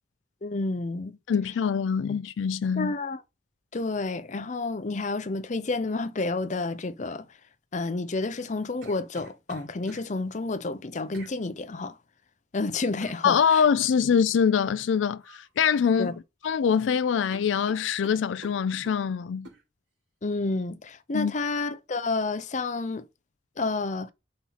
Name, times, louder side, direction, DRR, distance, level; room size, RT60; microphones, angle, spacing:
voice 1, 0.4-1.2 2.8-3.2 3.7-7.3 7.7-12.0 12.5-13.6 16.0-16.1 20.2-23.1 23.6-24.1, left 3 dB, 40° left, 0.6 m, -30 dB
voice 2, 1.3-2.9 13.2-16.2 16.4-19.5 21.1-21.3, left 7 dB, 85° left, 0.4 m, -24 dB
sound 1, 8.3-10.1 11.1-11.4 13.0-13.2 15.2-15.5 15.8-16.5 16.8-16.9 17.3-19.0 19.4-19.6, right 1 dB, 90° right, 2.6 m, -48 dB
4.3 x 4.3 x 5.5 m
head